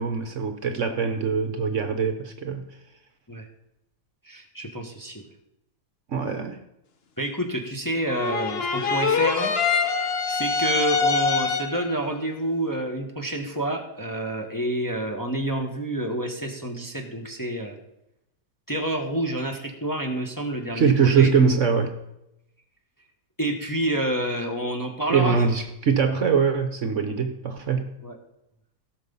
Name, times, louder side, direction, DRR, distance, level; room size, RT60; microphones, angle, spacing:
voice 1, 0.0-2.6 6.1-6.6 20.7-21.9 25.1-27.9, right 6 dB, 55° right, 7 dB, 1.1 m, -22 dB
voice 2, 4.2-5.2 7.2-9.5 10.3-17.8 18.7-21.3 23.4-25.4 28.0-28.2, right 1 dB, 15° left, 1 dB, 1.1 m, -28 dB
sound 1, 8.1-11.9, left 5 dB, 45° left, 1.1 m, -24 dB
16.5 x 6.6 x 5.4 m, 0.86 s
omnidirectional pair, 1.7 m